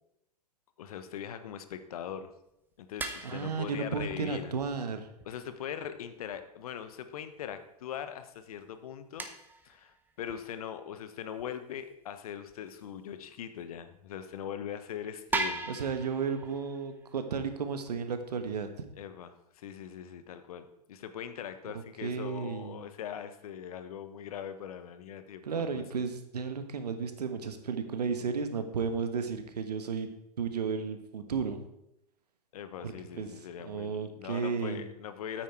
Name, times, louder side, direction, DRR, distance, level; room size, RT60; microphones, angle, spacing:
voice 1, 0.8-2.3 2.8-4.5 5.2-9.3 9.6-15.6 19.0-25.8 32.5-35.4, left 9 dB, 60° left, 10 dB, 1.1 m, -41 dB
sound 1, 2.2-2.3 3.0-5.3 5.8-5.9 6.3-6.4 6.9-7.0 7.4-7.5 8.5-8.6 9.2-10.5 11.4-11.5 11.9-12.0 12.5-12.8 13.6-13.8 14.1-14.2 14.7-14.8 15.3-18.7, right 3 dB, 10° right, 1.0 m, -40 dB
voice 2, 3.2-5.1 15.7-18.7 22.0-22.8 25.4-30.1 30.4-31.6 32.8-33.3 33.6-34.9, right 5 dB, 75° right, 8 dB, 1.3 m, -33 dB
9.2 x 8.5 x 4.6 m, 0.83 s
figure-of-eight pair, 100°, 21 cm